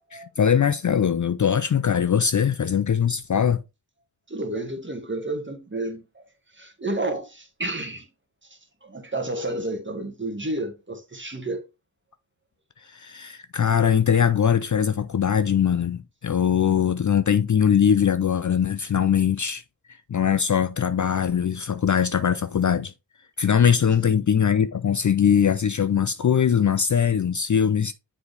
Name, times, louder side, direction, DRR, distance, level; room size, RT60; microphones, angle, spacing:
voice 1, 0.1-3.6 12.9-19.6 20.1-22.9 23.4-27.9, left 8 dB, 45° left, 0.5 m, -21 dB
voice 2, 4.3-6.2 6.5-8.1 8.8-11.6 24.0-24.2, right 2 dB, 25° right, 1.7 m, -31 dB
7.0 x 4.2 x 3.3 m
cardioid pair, 45°, 42 cm